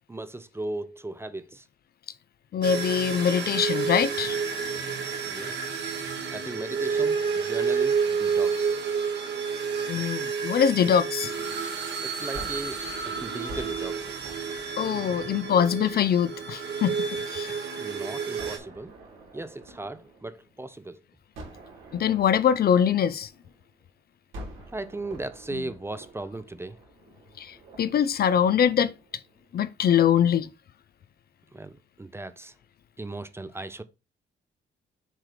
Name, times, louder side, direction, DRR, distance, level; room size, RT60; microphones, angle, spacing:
voice 1, 0.1-1.7 5.2-5.7 6.3-8.8 12.0-14.1 17.8-19.0 19.3-21.0 24.7-26.8 31.5-32.6 33.0-33.8, right 2 dB, 10° right, 0.6 m, -37 dB
voice 2, 2.5-4.4 9.9-11.3 14.8-17.6 21.9-23.3 27.4-28.9 29.5-30.5, left 8 dB, 50° left, 0.5 m, -23 dB
sound 1, 2.6-18.6, right 6 dB, 60° right, 1.7 m, -30 dB
Gunshot gunfire, 12.3-17.5 18.4-20.8 21.3-23.8 24.3-29.5, right 1 dB, 90° right, 3.0 m, -47 dB
7.5 x 3.2 x 4.9 m
cardioid pair, 90°, 20 cm